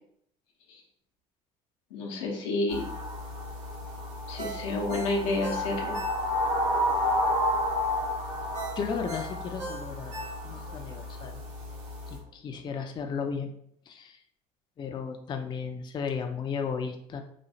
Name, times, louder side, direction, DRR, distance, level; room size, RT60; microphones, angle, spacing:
voice 1, 1.9-2.8 4.3-6.0, left 2 dB, 90° left, -1 dB, 0.7 m, -29 dB
sound 1, 2.7-12.2, left 1 dB, 85° right, 1.0 m, -31 dB
Ringtone, 4.4-6.6 7.0-7.1 8.5-10.8 11.2-11.3, right 2 dB, 45° right, 0.8 m, -39 dB
voice 2, 8.8-10.2 10.4-11.4 12.1-13.5 13.9-14.2 14.8-17.2, left 6 dB, 30° left, 5 dB, 0.3 m, -34 dB
3.0 x 2.0 x 2.6 m, 0.69 s
supercardioid pair, 75°, 16 cm